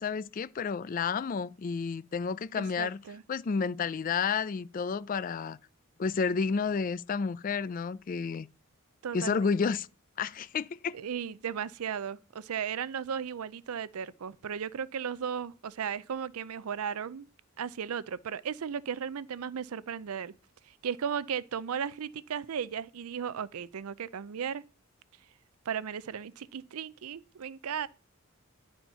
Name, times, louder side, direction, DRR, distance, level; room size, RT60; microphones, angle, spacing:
voice 1, 0.0-3.0 3.3-5.6 6.0-8.5 9.1-9.9 10.2-10.9, left 5 dB, 40° left, 0.3 m, -31 dB
voice 2, 2.6-3.2 9.0-9.4 10.9-17.3 17.6-20.3 20.8-24.6 25.7-27.9, right 7 dB, 90° right, 0.5 m, -35 dB
10.0 x 4.4 x 5.5 m
head